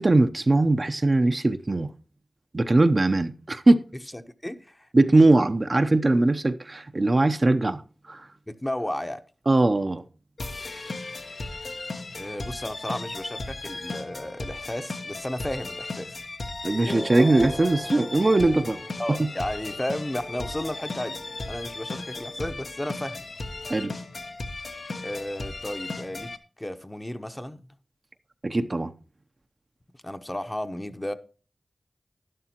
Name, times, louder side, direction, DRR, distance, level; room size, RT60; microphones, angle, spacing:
voice 1, 0.0-1.9 2.5-3.8 4.9-7.8 8.1-8.3 9.5-10.0 16.6-18.8 23.7-23.9 28.4-28.9, right 2 dB, 50° right, 0.7 m, -21 dB
voice 2, 4.1-4.9 8.5-9.2 12.2-16.2 19.0-21.2 21.5-23.2 25.0-27.7 30.0-31.1, left 1 dB, 20° left, 0.9 m, -33 dB
sound 1, 10.4-26.4, left 3 dB, 75° left, 1.1 m, -36 dB
Race car auto racing / Accelerating revving vroom, 16.8-22.9, equal, ahead, 0.5 m, -40 dB
11.5 x 11.0 x 2.9 m
cardioid pair, 45°, 0 cm